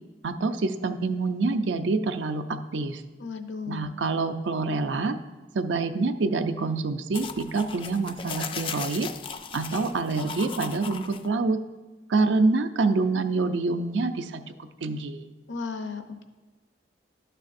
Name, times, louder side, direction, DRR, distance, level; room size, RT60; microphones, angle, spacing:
voice 1, 0.2-3.0 3.7-5.2 5.5-9.1 9.5-11.6 12.1-14.4 14.8-15.3, right 3 dB, 75° right, 9 dB, 0.5 m, -26 dB
voice 2, 3.2-3.9 15.5-16.2, left 5 dB, 80° left, 7 dB, 0.7 m, -35 dB
sound 1, 7.1-11.3, left 6 dB, 30° left, 0.3 m, -37 dB
12.0 x 6.6 x 2.6 m, 1.2 s
head